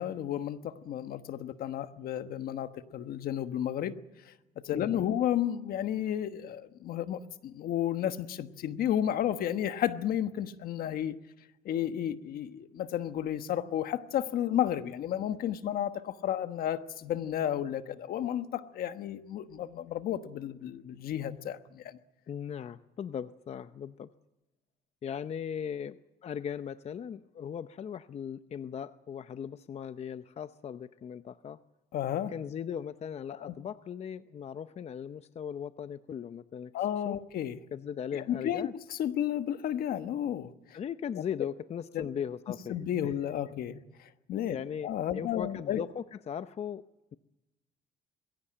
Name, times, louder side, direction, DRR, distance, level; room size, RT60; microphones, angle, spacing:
voice 1, 0.0-3.9 4.6-11.2 11.6-22.0 31.9-32.3 33.4-33.5 36.7-37.6 38.1-40.5 41.9-42.1 42.7-44.6 44.8-45.8, left 10 dB, 65° left, 10 dB, 1.3 m, -32 dB
voice 2, 4.7-5.1 22.3-24.1 25.0-31.6 32.3-36.7 37.0-37.2 37.7-38.7 40.7-42.8 43.0-43.1 44.5-46.8, left 8 dB, 40° left, 12 dB, 0.7 m, -38 dB
22.0 x 17.0 x 8.7 m, 0.98 s
cardioid pair, 105°, 16 cm